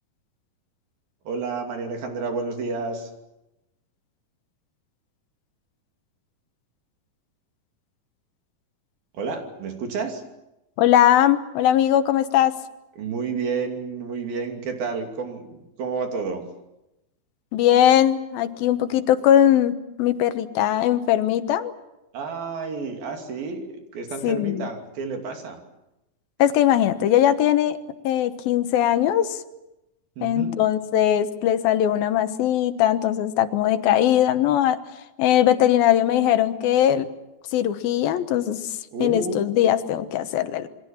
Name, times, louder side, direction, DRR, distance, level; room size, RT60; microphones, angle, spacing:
voice 1, 1.3-3.1 9.1-10.2 13.0-16.5 22.1-25.6 30.2-30.5 38.9-39.4, right 4 dB, 85° right, 4 dB, 4.6 m, -30 dB
voice 2, 10.8-12.5 17.5-21.7 24.2-24.7 26.4-27.8 28.0-29.4 30.2-34.8 35.2-37.1 37.5-40.7, left 11 dB, 85° left, 10 dB, 3.0 m, -20 dB
28.0 x 23.0 x 7.3 m, 0.94 s
omnidirectional pair, 4.1 m